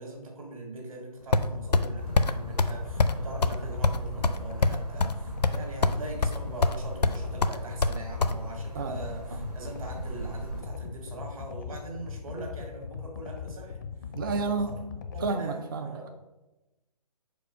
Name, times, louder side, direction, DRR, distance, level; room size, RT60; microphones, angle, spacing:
voice 1, 0.0-13.8 14.2-14.8 15.1-16.1, right 2 dB, 55° right, 1 dB, 2.0 m, -42 dB
sound 1, 1.3-1.9 2.2-2.3 2.6-2.7 3.0-3.2 3.4-3.6 3.8-5.2 5.4-6.0 6.2-6.8 7.0-8.3, left 3 dB, 80° left, 0.6 m, -23 dB
sound 2, 1.3-15.3, left 6 dB, 30° left, 0.4 m, -40 dB
sound 3, 2.0-10.6, right 4 dB, 75° right, 2.5 m, -40 dB
voice 2, 14.2-14.7 15.2-16.1, right 4 dB, 35° right, 6 dB, 0.4 m, -30 dB
5.2 x 4.5 x 5.7 m, 1.0 s
figure-of-eight pair, 140°, 21 cm